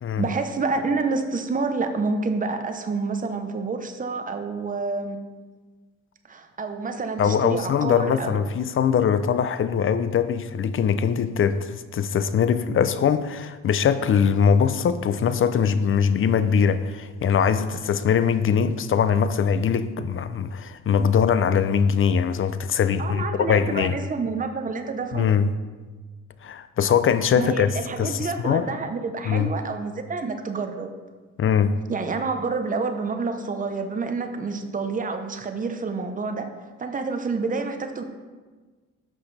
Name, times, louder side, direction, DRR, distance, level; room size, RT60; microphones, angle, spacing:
voice 1, 0.2-5.2 6.3-8.4 23.0-25.3 27.4-30.9 31.9-36.5 36.8-38.0, right 4 dB, 25° right, 0.8 m, -28 dB
voice 2, 7.2-24.0 25.1-25.5 26.4-27.7 28.0-28.7 29.3-29.5 31.4-31.8, left 7 dB, 45° left, 0.5 m, -22 dB
10.5 x 6.1 x 3.3 m
cardioid pair, 90°, 30 cm